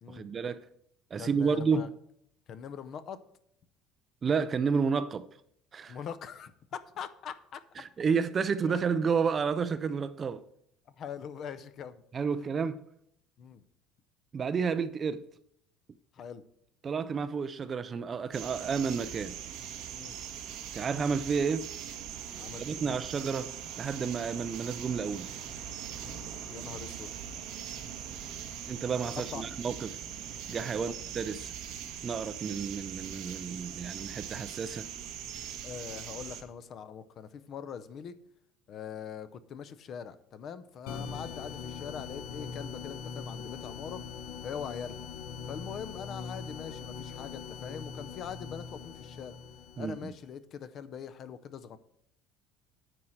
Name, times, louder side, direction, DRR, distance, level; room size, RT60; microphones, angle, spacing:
voice 1, 0.1-0.6 1.1-1.9 4.2-5.3 5.7-6.0 7.8-10.4 12.1-12.8 14.3-15.3 16.8-19.3 20.7-21.7 22.6-25.3 28.7-30.0 30.5-31.5 32.0-34.9 49.8-50.0, right 5 dB, 20° right, 0.3 m, -31 dB
voice 2, 1.2-1.9 2.5-3.2 5.9-7.6 8.7-8.8 11.0-12.0 12.3-12.4 13.4-13.6 16.1-16.4 19.9-20.2 22.3-23.0 26.0-27.2 29.2-29.4 30.7-30.9 35.6-38.2 38.7-44.0 44.4-45.0 45.5-49.4 49.8-51.8, left 7 dB, 35° left, 0.6 m, -42 dB
sound 1, 18.3-36.4, right 8 dB, 55° right, 1.2 m, -41 dB
sound 2, 40.9-50.2, left 6 dB, 75° left, 0.9 m, -42 dB
9.7 x 4.5 x 7.7 m
cardioid pair, 180°, 0 cm